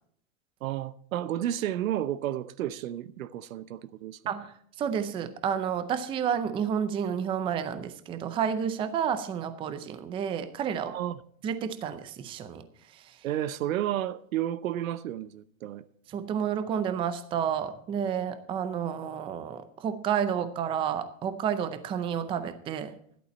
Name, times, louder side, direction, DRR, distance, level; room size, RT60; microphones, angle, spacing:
voice 1, 0.6-4.2 10.9-11.2 13.2-15.8, right 12 dB, 75° right, 0.8 m, -32 dB
voice 2, 4.3-11.0 11.4-12.7 12.9-13.2 16.1-23.0, right 8 dB, 15° right, 0.5 m, -30 dB
13.0 x 11.0 x 4.2 m
supercardioid pair, 145°, 41 cm